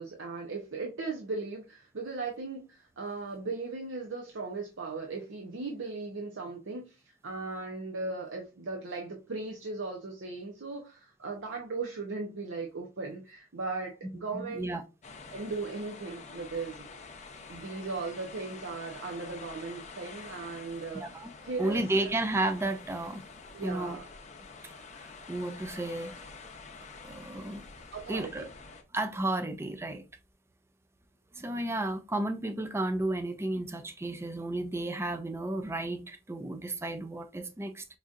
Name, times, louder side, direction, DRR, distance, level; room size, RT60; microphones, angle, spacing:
voice 1, 0.0-14.8 15.3-16.9 17.5-22.1 23.5-24.1 27.9-28.5, right 3 dB, 65° right, 0.7 m, -37 dB
voice 2, 14.3-14.8 20.9-21.3 21.6-23.2 23.6-24.0 25.3-26.1 27.0-27.7 28.1-28.5 28.9-30.0 31.4-37.8, right 2 dB, 15° right, 0.4 m, -32 dB
sound 1, 15.0-28.8, left 4 dB, 35° left, 0.6 m, -48 dB
4.8 x 2.6 x 2.4 m
head